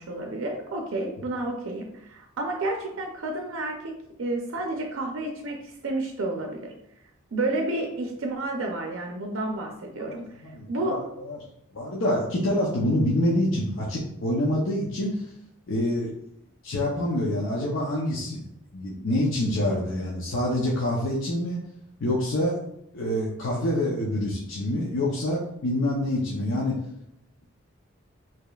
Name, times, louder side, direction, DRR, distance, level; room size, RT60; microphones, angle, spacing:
voice 1, 0.0-6.7 7.3-11.0, right 2 dB, 70° right, 2 dB, 0.5 m, -31 dB
voice 2, 10.0-11.4 11.7-15.3 15.7-16.1 16.6-18.4 18.7-21.6 22.0-22.6 22.9-26.8, left 1 dB, 70° left, -3 dB, 0.6 m, -26 dB
4.9 x 2.9 x 2.3 m, 0.78 s
head